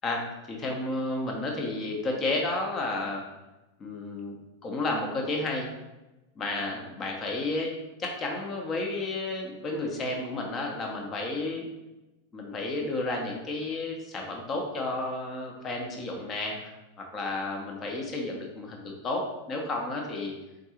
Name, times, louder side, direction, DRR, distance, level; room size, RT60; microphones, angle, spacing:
voice 1, 0.0-3.2 3.8-4.3 4.6-5.7 6.4-7.7 8.0-11.7 12.3-20.3, left 2 dB, 25° left, 1 dB, 1.0 m, -32 dB
4.4 x 3.9 x 2.9 m, 1.0 s
figure-of-eight pair, 90°, 0 cm